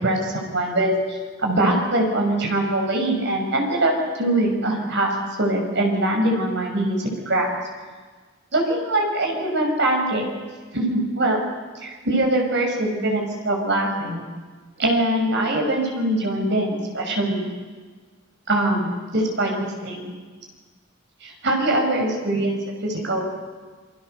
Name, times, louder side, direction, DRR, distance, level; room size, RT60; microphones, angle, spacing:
voice 1, 0.0-5.1 5.4-7.5 8.5-10.3 10.7-11.4 11.8-14.2 14.8-17.5 18.5-20.1 21.2-23.2, right 1 dB, 60° right, 2 dB, 6.5 m, -22 dB
28.5 x 24.0 x 6.7 m, 1.4 s
head